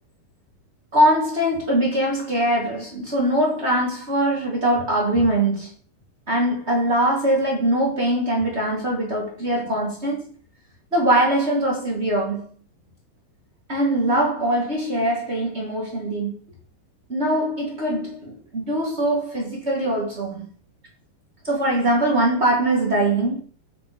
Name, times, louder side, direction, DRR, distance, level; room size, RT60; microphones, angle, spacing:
voice 1, 0.9-5.7 6.3-10.3 10.9-12.5 13.7-16.4 17.1-20.5 21.4-23.4, right 1 dB, 45° right, 0.8 m, -22 dB
9.2 x 5.1 x 5.1 m
omnidirectional pair, 5.4 m